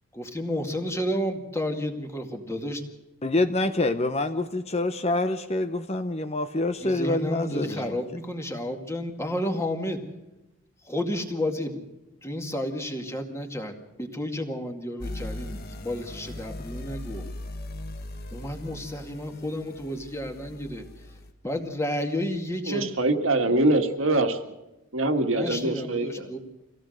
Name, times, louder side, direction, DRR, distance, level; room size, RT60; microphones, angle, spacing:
voice 1, 0.1-2.8 6.8-10.0 10.8-11.9 12.2-17.3 18.3-21.2 21.4-22.9 25.2-26.4, left 1 dB, 15° left, 2.1 m, -31 dB
voice 2, 3.2-8.0, left 2 dB, 30° left, 0.9 m, -26 dB
sound 1, 15.0-21.3, left 1 dB, 45° left, 1.5 m, -39 dB
voice 3, 22.7-24.4 24.9-26.3, right 2 dB, 65° right, 1.9 m, -24 dB
25.0 x 17.0 x 6.5 m
head